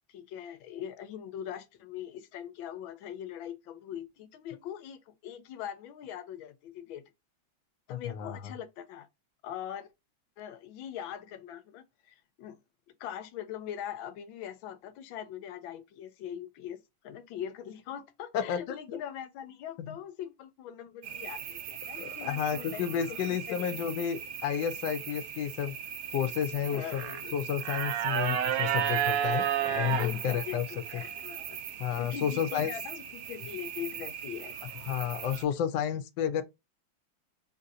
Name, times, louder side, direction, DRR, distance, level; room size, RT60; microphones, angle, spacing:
voice 1, 0.1-7.0 7.9-9.1 9.4-9.9 10.4-12.6 13.0-23.8 26.7-27.3 29.6-31.6 32.0-34.6, left 10 dB, 90° left, 1.4 m, -42 dB
voice 2, 7.9-8.5 18.3-19.0 19.8-20.0 22.0-25.7 26.1-27.0 27.3-30.7 30.9-31.0 31.8-32.7 34.9-36.4, left 9 dB, 75° left, 1.2 m, -31 dB
sound 1, 21.0-35.4, right 9 dB, 75° right, 0.8 m, -35 dB
3.8 x 2.6 x 2.6 m
omnidirectional pair, 2.1 m